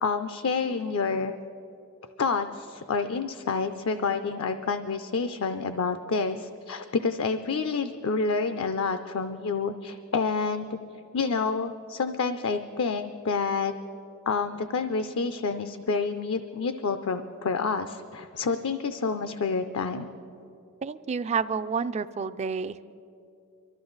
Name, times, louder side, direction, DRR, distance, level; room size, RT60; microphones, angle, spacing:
voice 1, 0.0-1.3 2.2-10.8 11.1-13.7 14.3-20.1, left 4 dB, 65° left, 9 dB, 0.5 m, -28 dB
voice 2, 20.8-22.9, right 5 dB, 30° right, 12 dB, 0.3 m, -29 dB
23.5 x 13.5 x 4.0 m, 2.7 s
head